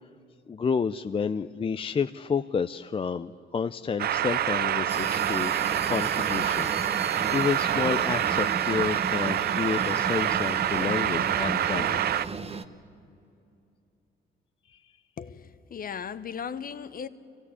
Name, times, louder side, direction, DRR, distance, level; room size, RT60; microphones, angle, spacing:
voice 1, 0.5-12.0 14.7-14.8, left 6 dB, 30° left, 0.5 m, -30 dB
sound 1, 4.0-12.3, right 11 dB, 50° right, 0.5 m, -26 dB
sound 2, 4.9-12.6, right 4 dB, 30° right, 1.1 m, -35 dB
voice 2, 15.2-17.1, left 7 dB, 45° left, 1.0 m, -37 dB
24.0 x 16.5 x 9.7 m
cardioid pair, 90°, 20 cm